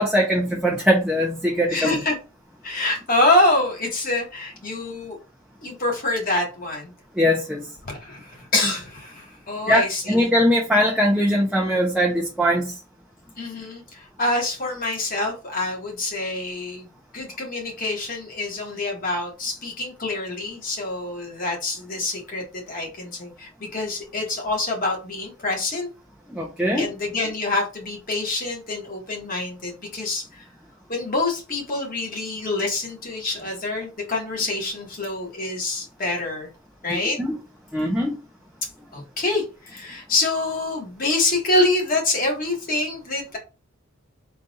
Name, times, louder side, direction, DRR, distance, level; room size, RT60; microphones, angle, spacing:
voice 1, 0.0-2.0 7.2-7.6 9.7-12.7 26.3-26.9 36.9-37.4 37.7-38.2, equal, 5° right, -3 dB, 0.6 m, -21 dB
voice 2, 1.7-2.2 2.6-5.2 5.6-6.9 7.8-10.3 13.4-25.9 26.7-30.5 30.9-36.5 36.8-37.2 38.9-43.4, left 2 dB, 40° left, 0 dB, 1.4 m, -26 dB
3.9 x 2.5 x 4.0 m, 0.31 s
head